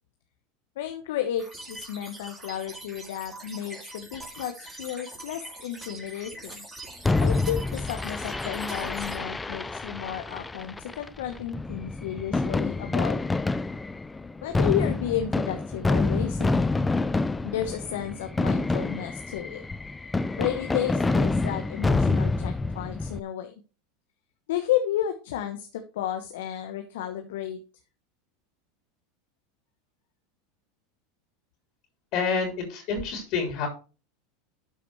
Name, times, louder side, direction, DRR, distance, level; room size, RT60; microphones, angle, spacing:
voice 1, 0.8-6.7 7.2-13.2 14.4-16.6 17.4-19.6 20.4-23.5 24.5-27.6, left 11 dB, 70° left, 6 dB, 1.1 m, -32 dB
sound 1, 1.4-9.2, right 2 dB, 15° right, 3.3 m, -43 dB
Fireworks, 7.0-23.2, left 3 dB, 15° left, 0.5 m, -27 dB
voice 2, 32.1-33.7, left 5 dB, 50° left, 3 dB, 3.4 m, -28 dB
12.5 x 5.0 x 4.7 m, 0.34 s
hypercardioid pair, 90°, 0 cm